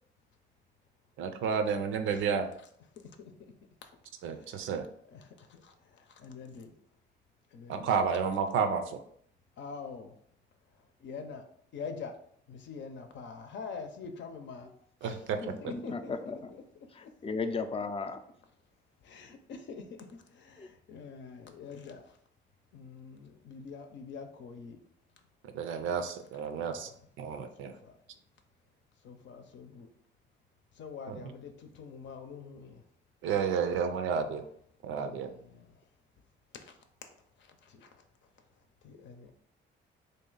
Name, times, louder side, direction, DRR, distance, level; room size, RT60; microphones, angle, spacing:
voice 1, 1.2-2.5 4.2-4.9 7.7-9.0 15.0-15.4 25.4-26.9 27.2-27.7 31.1-31.2 33.2-34.4 34.8-35.3, right 6 dB, 85° right, 8 dB, 0.5 m, -31 dB
voice 2, 3.0-3.5 4.2-4.7 5.1-6.7 7.5-7.9 9.6-10.1 11.0-11.4 11.7-12.2 12.5-14.7 15.0-16.2 17.0-17.1 19.0-22.0 22.7-24.8 26.6-27.0 27.6-27.9 29.0-29.9 30.8-32.8 34.2-34.4 35.0-35.8 36.6-36.7 37.4-37.9 38.8-39.3, left 5 dB, 65° left, 6 dB, 0.6 m, -45 dB
voice 3, 15.5-16.5 16.9-18.2 20.6-20.7, left 4 dB, 30° left, 8 dB, 0.4 m, -36 dB
3.3 x 2.7 x 3.8 m, 0.65 s
cardioid pair, 90°, 20 cm